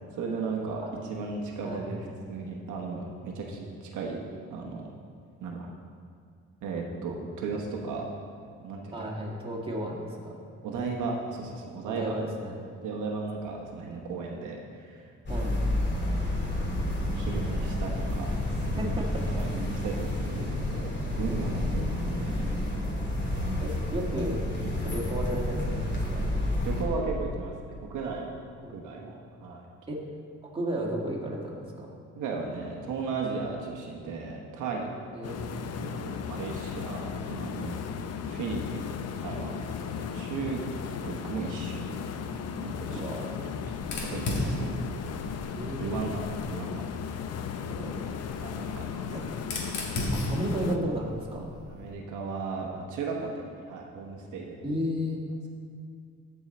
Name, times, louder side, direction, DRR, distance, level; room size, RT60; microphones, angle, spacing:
voice 1, 0.1-4.2 4.5-4.9 5.4-5.7 6.6-8.0 8.6-9.0 10.6-12.2 12.8-15.1 15.8-16.3 17.1-18.3 18.7-18.8 19.2-20.9 21.2-22.8 24.6-24.8 26.6-28.4 28.7-29.7 32.1-34.9 35.8-37.8 38.3-38.9 39.2-39.6 40.0-40.6 41.0-41.9 42.6-43.1 44.1-44.7 45.7-46.2 46.5-46.8 48.4-48.8 51.7-54.6, right 4 dB, 80° right, 0 dB, 1.0 m, -35 dB
voice 2, 8.9-10.5 11.8-12.5 15.3-15.6 18.8-19.3 23.6-24.5 24.7-26.3 28.6-29.1 29.9-30.1 30.5-32.0 35.1-35.9 42.9-43.5 45.6-46.2 47.7-48.1 49.1-49.3 50.1-51.6 54.6-55.2, equal, 20° right, -3 dB, 2.0 m, -34 dB
sound 1, 15.2-26.8, left 1 dB, 35° left, 2.2 m, -30 dB
sound 2, 35.2-50.8, left 7 dB, 55° left, 0.6 m, -36 dB
Fire, 43.8-46.5 47.7-51.9, left 1 dB, 80° left, 1.6 m, -35 dB
14.0 x 4.7 x 4.2 m, 2.3 s
cardioid pair, 90°, 30 cm